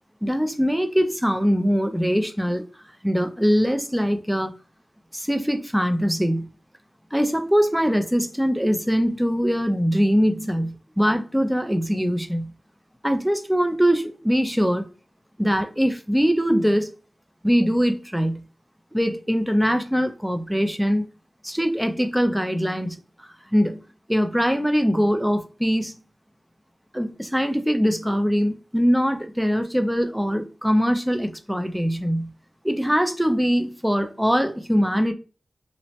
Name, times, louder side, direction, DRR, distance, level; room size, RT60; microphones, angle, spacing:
voice 1, 0.2-2.6 3.0-4.5 5.1-6.5 7.1-12.5 13.0-14.9 15.4-16.9 17.4-18.4 18.9-21.1 21.4-23.8 24.1-26.0 26.9-32.3 32.6-35.1, equal, 5° right, 0.5 m, -22 dB
3.0 x 2.1 x 2.7 m
wide cardioid pair, 60°, 0 cm